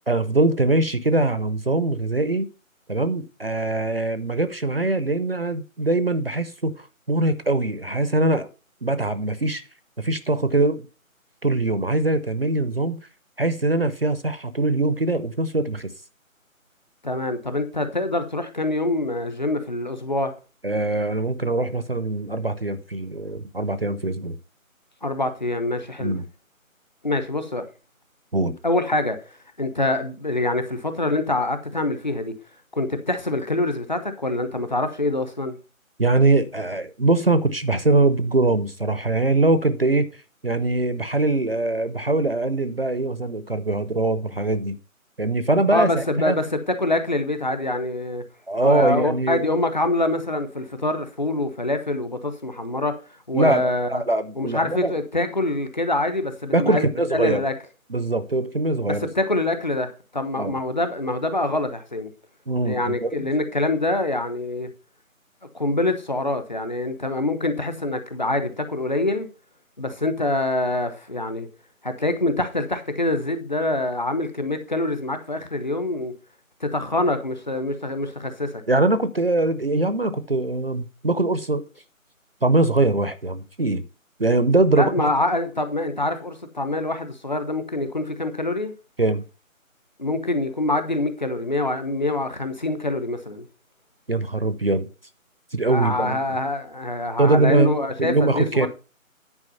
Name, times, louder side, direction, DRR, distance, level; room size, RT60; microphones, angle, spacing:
voice 1, 0.1-2.5 2.9-8.5 8.8-9.6 10.0-10.9 11.4-13.0 13.4-15.9 20.6-24.4 26.0-26.3 28.3-28.5 36.0-40.1 40.4-44.8 45.2-46.4 48.5-49.4 53.3-54.9 56.5-57.4 57.9-59.1 60.4-60.6 62.5-63.3 78.7-81.6 82.4-83.8 84.2-84.9 89.0-89.2 94.1-94.9 95.5-96.2 97.2-98.7, right 2 dB, 45° right, 0.6 m, -22 dB
voice 2, 17.0-20.3 25.0-26.2 27.0-27.7 28.6-29.2 29.6-32.3 32.7-35.6 45.7-48.2 48.6-52.9 53.3-54.0 54.4-56.8 57.1-57.5 58.9-62.1 62.6-64.7 65.5-69.3 69.8-71.5 71.8-76.1 76.6-78.6 84.7-88.7 90.0-93.5 95.7-98.7, left 2 dB, 35° left, 0.9 m, -25 dB
9.8 x 4.7 x 5.5 m
figure-of-eight pair, 170°, 42 cm